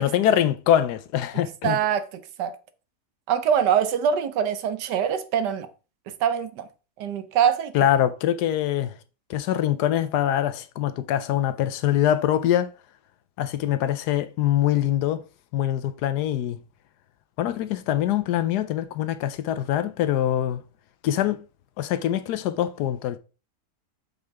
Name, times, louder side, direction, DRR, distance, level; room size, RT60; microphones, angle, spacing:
voice 1, 0.0-1.8 7.7-8.9 9.3-12.7 13.4-15.2 15.5-16.6 17.4-20.6 21.0-21.5 21.8-23.2, left 11 dB, 75° left, 1.2 m, -24 dB
voice 2, 1.6-2.6 3.3-5.7 6.1-6.7 7.0-7.7, right 8 dB, 85° right, 1.4 m, -24 dB
6.6 x 5.5 x 3.4 m
omnidirectional pair, 1.8 m